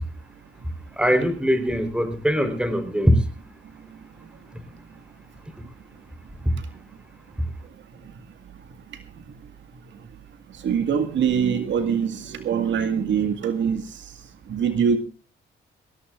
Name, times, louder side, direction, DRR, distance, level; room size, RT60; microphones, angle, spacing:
voice 1, 1.0-3.2, equal, 5° right, 9 dB, 4.0 m, -21 dB
voice 2, 10.6-13.8 14.5-15.0, right 7 dB, 70° right, 8 dB, 2.0 m, -23 dB
19.0 x 18.5 x 2.5 m, 0.35 s
cardioid pair, 90°, 20 cm